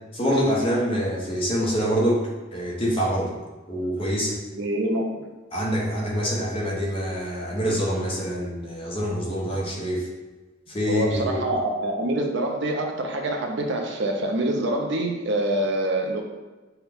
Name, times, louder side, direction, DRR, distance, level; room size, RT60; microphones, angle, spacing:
voice 1, 0.1-2.2 2.5-3.3 3.7-4.4 5.5-10.0 10.7-11.6, equal, 30° left, -4 dB, 1.0 m, -25 dB
voice 2, 4.6-5.2 10.9-16.2, right 1 dB, 65° right, 2 dB, 0.6 m, -25 dB
5.6 x 2.3 x 3.5 m, 1.2 s
head